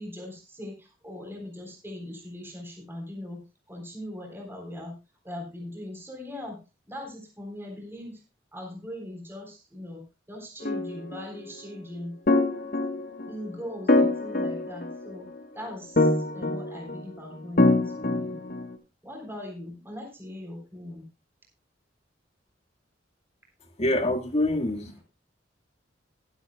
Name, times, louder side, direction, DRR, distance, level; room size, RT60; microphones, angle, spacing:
voice 1, 0.0-3.4 3.7-5.0 5.2-6.6 6.9-8.2 8.5-12.2 13.2-15.3 15.5-18.4 19.0-21.1, left 1 dB, 15° right, 1 dB, 3.8 m, -40 dB
sound 1, 10.6-11.2 12.3-13.3 13.9-15.3 16.0-17.0 17.6-18.7, left 2 dB, 50° left, 1.2 m, -24 dB
voice 2, 23.8-25.0, left 1 dB, 35° left, 4 dB, 1.8 m, -26 dB
21.5 x 8.0 x 2.3 m, 0.27 s
head